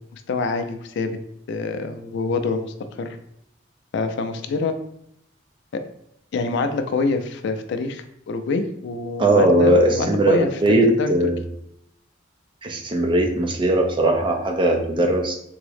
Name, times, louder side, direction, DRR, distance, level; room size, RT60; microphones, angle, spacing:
voice 1, 0.1-1.1 1.5-3.2 3.9-4.7 5.7-5.8 6.3-11.1, left 3 dB, 65° left, 8 dB, 0.4 m, -26 dB
voice 2, 9.2-11.4 12.6-15.3, right 1 dB, 25° right, 2 dB, 0.4 m, -19 dB
3.5 x 2.0 x 3.2 m, 0.75 s
head